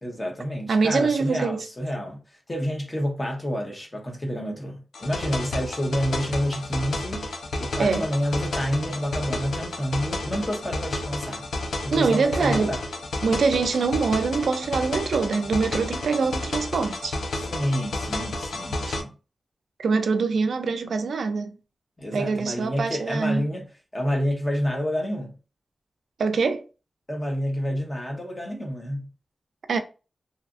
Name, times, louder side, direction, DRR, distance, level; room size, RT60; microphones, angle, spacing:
voice 1, 0.0-2.2 2.5-7.3 7.6-11.5 11.8-12.8 17.4-19.1 22.0-23.7 23.9-25.3 27.1-29.1, equal, 20° left, 0.7 m, -28 dB
voice 2, 0.7-1.7 7.8-8.1 11.9-12.7 13.2-17.2 19.8-21.6 22.1-23.4 26.2-26.6 29.7-29.8, right 4 dB, 75° right, 0.3 m, -24 dB
sound 1, 4.9-19.0, left 2 dB, 75° left, 0.5 m, -31 dB
2.7 x 2.4 x 2.4 m
wide cardioid pair, 175°, 0 cm